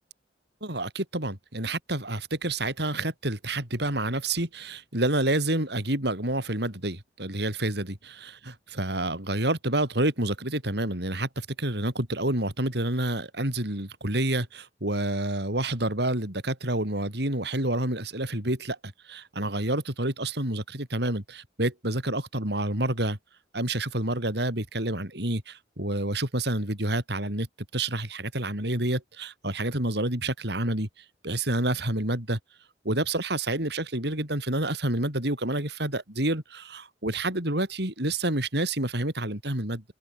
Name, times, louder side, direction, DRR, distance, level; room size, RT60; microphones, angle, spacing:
voice 1, 0.6-23.2 23.5-27.5 27.7-32.4 32.8-39.8, right 1 dB, 65° right, 6.7 m, -28 dB
open air
head